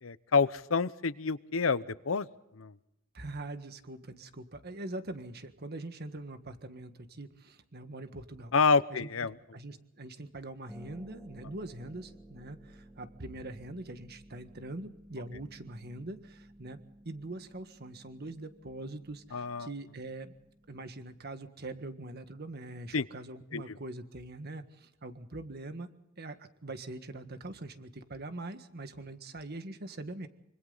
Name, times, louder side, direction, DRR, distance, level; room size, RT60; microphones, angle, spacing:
voice 1, 0.0-2.3 2.5-2.7 8.5-9.3 19.3-19.7 22.9-23.0 23.5-23.6, left 4 dB, 85° left, 16 dB, 0.8 m, -28 dB
voice 2, 3.1-8.5 8.9-20.3 20.7-25.9 26.2-30.3, right 2 dB, 50° right, 8 dB, 1.7 m, -43 dB
Harp, 10.7-21.2, right 1 dB, 5° right, 2.0 m, -55 dB
25.5 x 25.5 x 4.0 m, 0.86 s
head